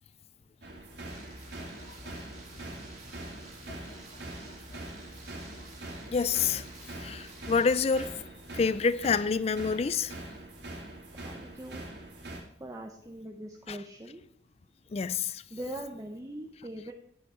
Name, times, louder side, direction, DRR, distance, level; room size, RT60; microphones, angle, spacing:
sound 1, 0.6-12.4, right 1 dB, 65° right, 2.2 m, -44 dB
sound 2, 1.1-8.0, right 1 dB, 35° right, 2.4 m, -49 dB
voice 1, 6.1-6.6 7.0-8.1 8.5-10.1 13.7-13.8 14.9-15.4, left 5 dB, 35° left, 0.4 m, -27 dB
voice 2, 11.1-11.9 12.6-14.2 15.5-16.9, right 1 dB, 15° right, 0.6 m, -41 dB
9.7 x 8.8 x 4.9 m
head